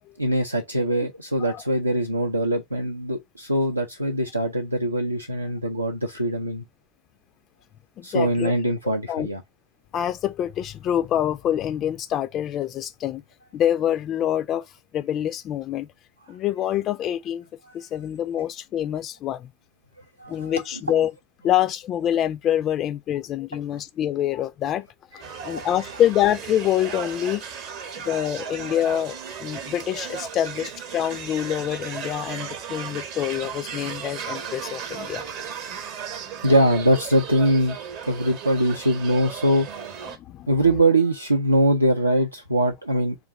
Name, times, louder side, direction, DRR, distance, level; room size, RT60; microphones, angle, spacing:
voice 1, 0.2-6.6 8.0-9.4 17.6-17.7 20.2-20.5 25.1-25.8 27.7-28.1 28.5-28.6 36.4-37.8 38.1-39.7 40.5-43.1, right 1 dB, 85° right, 0.5 m, -22 dB
voice 2, 8.0-8.5 9.1-9.3 9.9-13.2 13.5-15.9 16.3-17.4 17.7-19.5 20.3-21.1 21.4-24.9 25.1-27.4 28.0-35.6 40.2-40.5, left 11 dB, 30° left, 0.3 m, -26 dB
sound 1, 25.2-40.2, right 7 dB, 45° right, 0.8 m, -36 dB
3.8 x 2.4 x 3.8 m
figure-of-eight pair, 90°, 0 cm